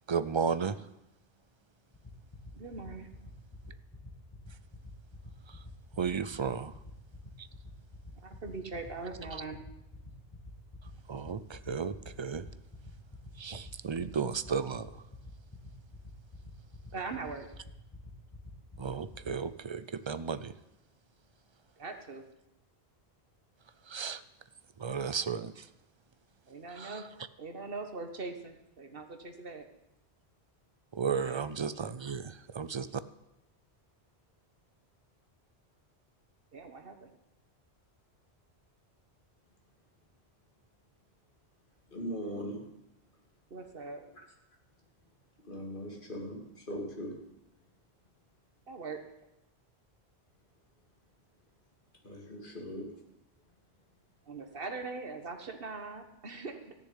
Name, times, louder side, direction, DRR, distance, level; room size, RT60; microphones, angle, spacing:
voice 1, 0.1-0.9 5.5-5.6 6.0-6.8 7.4-7.5 9.3-9.4 11.1-12.5 13.4-15.1 18.8-20.5 23.8-24.2 24.8-25.7 26.7-27.1 30.9-32.9, right 6 dB, 40° right, 14 dB, 0.4 m, -34 dB
sound 1, 1.9-19.3, left 2 dB, 20° left, 2.4 m, -47 dB
voice 2, 2.5-3.1 8.2-9.6 16.9-17.4 21.8-22.2 26.5-27.0 27.4-29.7 31.2-31.4 36.5-37.1 43.5-44.1 48.7-49.0 54.2-56.7, right 3 dB, 60° right, 6 dB, 1.7 m, -41 dB
voice 3, 41.9-42.6 45.4-47.1 52.0-52.8, equal, 50° left, 0 dB, 2.8 m, -39 dB
14.5 x 6.9 x 9.9 m, 0.87 s
omnidirectional pair, 1.1 m